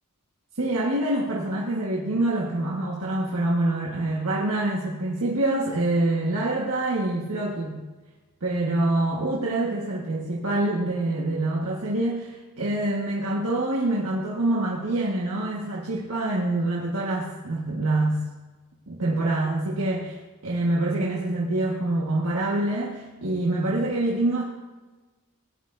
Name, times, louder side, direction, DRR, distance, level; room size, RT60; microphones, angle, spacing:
voice 1, 0.6-7.8 8.4-18.2 18.9-24.4, right 2 dB, 80° right, -4 dB, 1.5 m, -26 dB
17.5 x 11.0 x 2.7 m, 1.2 s
head